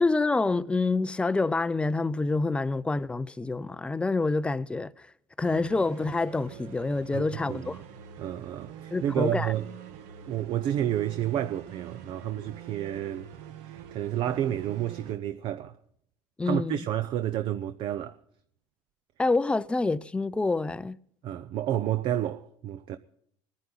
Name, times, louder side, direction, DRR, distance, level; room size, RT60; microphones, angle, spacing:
voice 1, 0.0-4.9 5.4-7.8 8.9-9.5 16.4-16.8 19.2-21.0, left 3 dB, 10° left, 0.5 m, -27 dB
sound 1, 5.4-15.2, right 9 dB, 80° right, 1.3 m, -45 dB
voice 2, 7.1-7.8 8.2-9.7 10.3-13.3 13.6-15.7 16.4-18.2 21.2-23.0, right 11 dB, 55° right, 0.7 m, -30 dB
20.5 x 10.0 x 4.0 m
cardioid pair, 130°, 11 cm